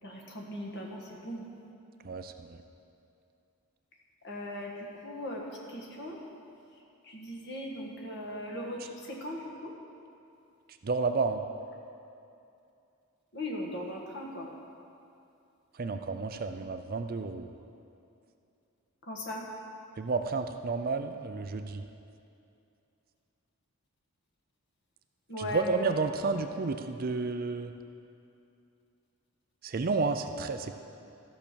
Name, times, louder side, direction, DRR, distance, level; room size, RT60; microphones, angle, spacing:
voice 1, 0.0-1.4 4.2-6.2 7.0-9.7 13.3-14.5 19.0-19.5 25.3-26.0, left 1 dB, 50° left, -1 dB, 1.6 m, -38 dB
voice 2, 2.0-2.6 10.8-11.4 15.7-17.5 20.0-21.8 25.4-27.7 29.6-30.8, right 4 dB, 40° right, 8 dB, 0.4 m, -31 dB
14.0 x 5.9 x 6.9 m, 2.6 s
head